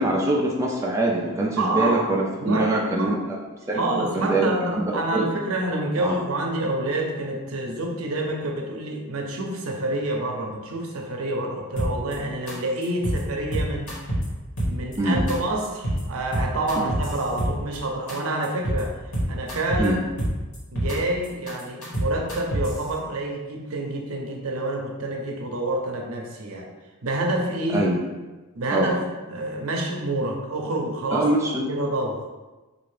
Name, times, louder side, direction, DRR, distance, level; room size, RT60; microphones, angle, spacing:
voice 1, 0.0-3.4 3.7-3.8 4.1-5.3 6.0-6.2 15.0-15.2 16.8-16.9 19.8-20.0 27.7-28.1 28.7-28.9 31.1-31.7, right 2 dB, 15° right, -2 dB, 0.3 m, -24 dB
voice 2, 1.5-2.1 2.4-3.2 3.7-13.9 14.7-19.0 19.3-20.0 20.7-26.7 27.0-27.9 28.6-31.3 31.6-32.3, right 1 dB, 80° right, 1 dB, 0.6 m, -27 dB
sound 1, 11.8-12.1 12.5-12.6 12.8-13.2 13.5-14.2 14.6-15.3 15.6-16.0 16.3-17.8 18.1-18.2 18.4-18.8 19.1-19.9 20.2-21.0 21.2-22.8, right 1 dB, 90° left, 1.3 m, -26 dB
3.5 x 2.4 x 3.2 m, 1.2 s
head